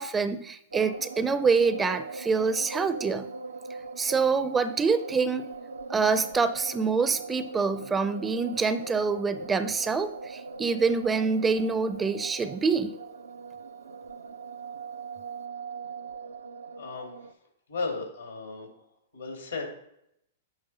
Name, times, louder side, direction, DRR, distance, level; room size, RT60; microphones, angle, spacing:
voice 1, 0.0-3.3 4.0-5.5 5.9-12.9, right 5 dB, 15° right, 12 dB, 0.5 m, -26 dB
sound 1, 0.7-17.3, right 3 dB, 80° right, 0.5 m, -40 dB
voice 2, 16.8-17.1 17.7-18.7 19.1-19.7, left 4 dB, 80° left, 2 dB, 2.3 m, -34 dB
9.0 x 3.2 x 5.7 m, 0.77 s
figure-of-eight pair, 105°, 0 cm